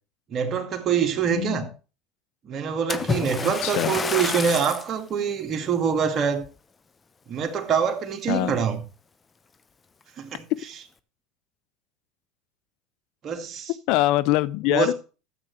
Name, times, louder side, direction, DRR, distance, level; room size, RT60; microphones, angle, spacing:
voice 1, 0.3-1.7 2.4-6.4 7.3-8.8 10.2-10.4 13.2-13.7 14.7-14.9, right 7 dB, 45° right, 2.2 m, -25 dB
voice 2, 1.3-1.7 3.4-4.0 8.3-8.6 10.5-10.6 13.9-14.9, left 16 dB, 65° left, 0.4 m, -24 dB
Splash splatter, 2.9-4.9 5.6-5.8 6.4-6.5, left 5 dB, 25° left, 0.7 m, -29 dB
13.5 x 8.1 x 3.3 m
hypercardioid pair, 85°, 0 cm